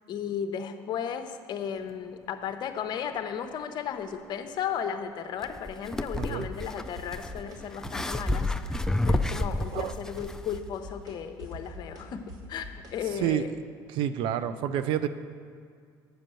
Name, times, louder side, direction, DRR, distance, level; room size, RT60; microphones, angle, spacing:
voice 1, 0.1-13.5, left 8 dB, 55° left, 8 dB, 0.7 m, -35 dB
sound 1, 5.4-10.6, left 1 dB, 5° left, 0.3 m, -30 dB
sound 2, 6.2-6.7 6.9-7.6 7.8-8.5 8.7-9.4 9.6-13.3, equal, 45° right, 1.8 m, -43 dB
voice 2, 6.2-6.5 9.7-10.0 13.1-13.5 13.9-15.1, right 10 dB, 65° right, 12 dB, 0.5 m, -29 dB
7.8 x 5.2 x 7.6 m, 2.2 s
supercardioid pair, 90°, 9 cm